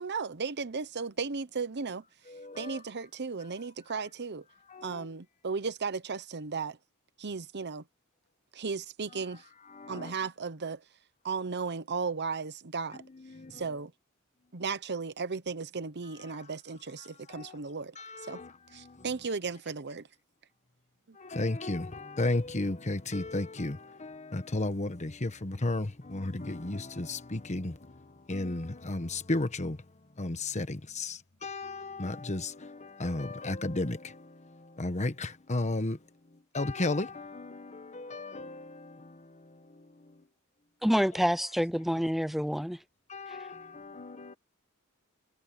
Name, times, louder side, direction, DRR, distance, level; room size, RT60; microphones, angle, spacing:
voice 1, 0.0-2.0 2.5-4.4 4.8-6.8 7.2-7.8 8.5-9.4 9.9-10.8 11.2-13.0 13.5-13.9 14.5-18.4 18.7-20.1 21.1-21.2, right 5 dB, 50° right, 0.9 m, -35 dB
voice 2, 2.3-2.8 4.7-5.1 9.1-9.2 9.7-10.1 13.1-13.7 17.3-17.5 18.0-19.0 21.2-27.8 28.3-29.8 30.2-34.2 34.8-36.0 36.5-39.2 41.1-41.2 43.1-44.3, left 2 dB, 35° left, 1.2 m, -34 dB
voice 3, 40.8-42.8, equal, ahead, 0.6 m, -27 dB
head